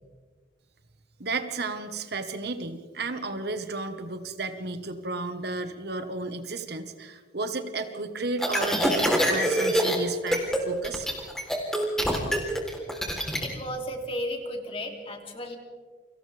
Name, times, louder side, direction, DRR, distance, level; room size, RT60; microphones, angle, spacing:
voice 1, 1.2-11.1, right 3 dB, 60° right, 8 dB, 1.4 m, -33 dB
sound 1, 8.4-10.0 10.3-10.6 10.8-13.5, equal, 5° left, 3.6 m, -25 dB
voice 2, 13.1-15.6, equal, 30° left, 2 dB, 2.9 m, -34 dB
29.5 x 25.5 x 3.5 m, 1.5 s
head